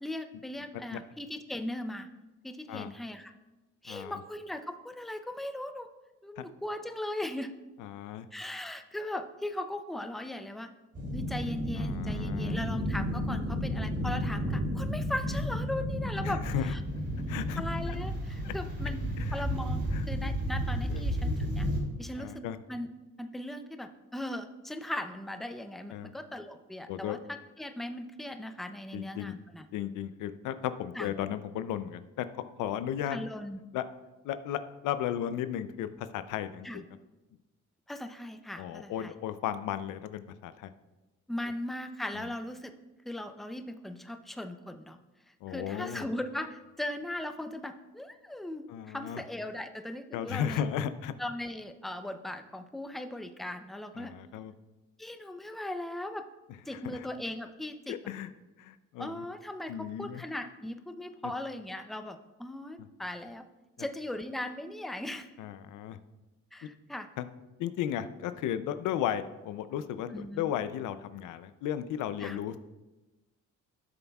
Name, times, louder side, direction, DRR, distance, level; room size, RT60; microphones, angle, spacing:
voice 1, 0.0-2.1 2.4-3.3 3.8-5.9 6.2-7.5 8.3-10.7 11.1-16.8 17.6-21.7 22.0-22.4 22.7-22.9 23.2-29.7 30.9-31.1 33.1-33.6 36.6-36.8 37.9-39.1 41.3-42.7 43.0-45.0 45.3-50.6 51.2-54.1 55.0-56.3 56.7-58.0 59.0-63.4 63.8-65.3 66.5-67.1 70.1-70.5 72.2-72.4, left 1 dB, ahead, 8 dB, 0.5 m, -38 dB
voice 2, 3.9-4.2 6.4-6.5 7.8-8.3 11.8-12.6 16.2-16.7 17.3-17.6 18.4-18.5 19.2-19.3 19.9-20.0 20.9-21.1 22.2-22.6 25.9-26.1 26.9-27.2 28.9-29.3 29.7-32.3 32.6-33.2 33.7-33.8 34.2-36.7 38.6-40.7 42.2-42.3 45.4-46.0 48.7-49.2 50.1-51.1 54.0-54.5 56.8-57.1 57.9-58.3 58.6-59.2 59.7-60.2 61.2-61.3 65.4-66.0 66.6-66.7 67.2-67.3 67.6-72.6, left 10 dB, 85° left, 12 dB, 0.5 m, -35 dB
sound 1, 10.9-21.8, equal, 40° right, 2.7 m, -32 dB
12.5 x 7.1 x 2.3 m, 1.1 s
cardioid pair, 90°, 30 cm